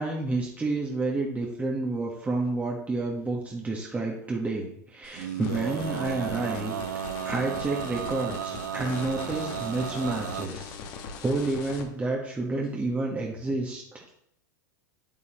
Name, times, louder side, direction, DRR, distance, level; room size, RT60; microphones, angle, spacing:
voice 1, 0.0-6.7 7.2-10.7 11.2-14.1, right 2 dB, 15° right, -1 dB, 1.4 m, -30 dB
sound 1, 5.0-11.8, left 5 dB, 55° left, 1.6 m, -41 dB
Male singing, 5.2-10.5, right 10 dB, 85° right, 0.4 m, -34 dB
8.7 x 8.3 x 3.1 m, 0.72 s
hypercardioid pair, 105°, 10 cm